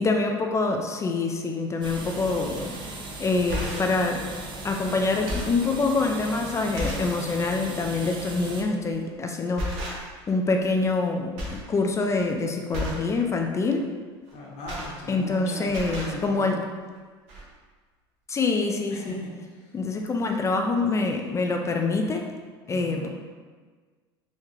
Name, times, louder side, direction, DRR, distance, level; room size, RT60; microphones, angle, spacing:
voice 1, 0.0-2.7 3.2-4.2 4.6-9.7 10.3-13.9 15.1-16.6 18.3-19.2 19.7-22.3 22.7-23.1, left 3 dB, 20° left, 3 dB, 0.3 m, -25 dB
sound 1, 1.8-8.6, right 2 dB, 35° right, 0.6 m, -38 dB
sound 2, 2.6-2.8 3.3-4.0 4.7-4.8 5.1-5.7 6.3-6.4 6.8-7.2 7.5-7.7 8.9-9.1 9.6-10.3 10.6-11.1 11.4-11.7 12.0-12.3 12.7-13.1 14.3-15.4 15.6-16.2 17.0-17.1 17.3-17.4, equal, 60° right, 0.9 m, -33 dB
voice 2, 14.3-16.6 18.9-19.8 22.7-23.1, left 1 dB, 60° left, -3 dB, 1.0 m, -39 dB
3.6 x 2.1 x 3.1 m, 1.5 s
hypercardioid pair, 95°, 13 cm